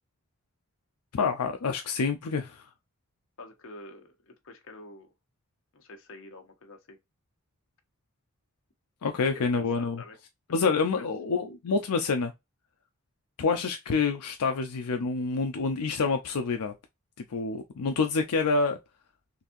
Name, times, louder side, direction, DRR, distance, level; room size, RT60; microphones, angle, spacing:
voice 1, 1.1-2.7 9.0-10.0 10.5-12.3 13.4-16.7 17.3-18.8, left 4 dB, 90° left, 0.5 m, -27 dB
voice 2, 3.4-5.1 5.7-7.0 9.2-10.2 10.5-10.7 11.0-11.1, left 2 dB, 65° left, 0.9 m, -47 dB
4.1 x 2.6 x 2.5 m
head